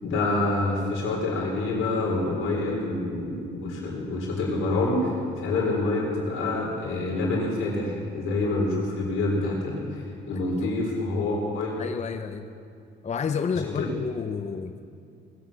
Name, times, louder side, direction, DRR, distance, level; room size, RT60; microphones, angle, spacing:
voice 1, 0.0-5.0 5.4-11.8 13.6-13.9, left 2 dB, 85° left, -3 dB, 3.9 m, -27 dB
voice 2, 10.3-10.7 11.8-12.5 13.0-14.8, left 6 dB, 35° left, 9 dB, 0.6 m, -30 dB
19.5 x 7.3 x 7.5 m, 2.4 s
cardioid pair, 90°, 20 cm